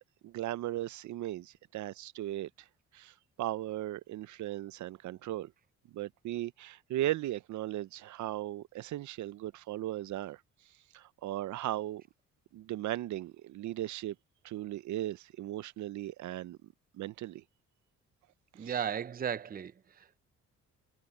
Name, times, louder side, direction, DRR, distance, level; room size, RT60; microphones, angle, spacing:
voice 1, 0.2-2.5 2.9-5.5 5.9-10.4 10.9-12.0 12.5-14.1 14.4-16.6 16.9-17.4 18.6-18.7, right 14 dB, 70° right, 0.6 m, -37 dB
voice 2, 18.5-20.2, right 8 dB, 30° right, 0.6 m, -36 dB
cardioid pair, 90°, 30 cm